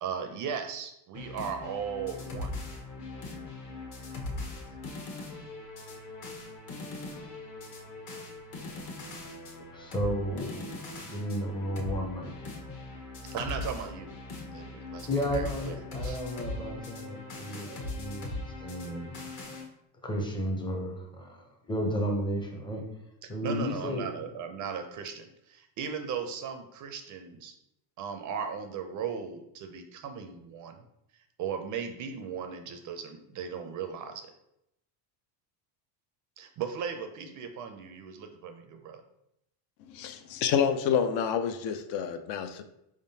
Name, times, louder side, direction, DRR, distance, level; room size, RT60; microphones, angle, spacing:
voice 1, 0.0-2.5 10.6-10.7 13.2-14.1 14.5-16.2 16.7-16.8 17.3-18.0 23.2-27.5 28.0-30.8 31.1-34.3 36.4-39.0, right 6 dB, 45° right, 6 dB, 0.4 m, -37 dB
sound 1, 1.1-19.7, left 2 dB, 40° left, 1.0 m, -40 dB
voice 2, 9.7-10.6 11.0-12.3 15.1-19.2 20.0-22.8 23.3-24.1, equal, 10° left, 2 dB, 0.5 m, -33 dB
voice 3, 39.9-42.6, left 7 dB, 60° left, 9 dB, 0.5 m, -28 dB
4.7 x 3.6 x 2.7 m, 0.81 s
cardioid pair, 145°, 46 cm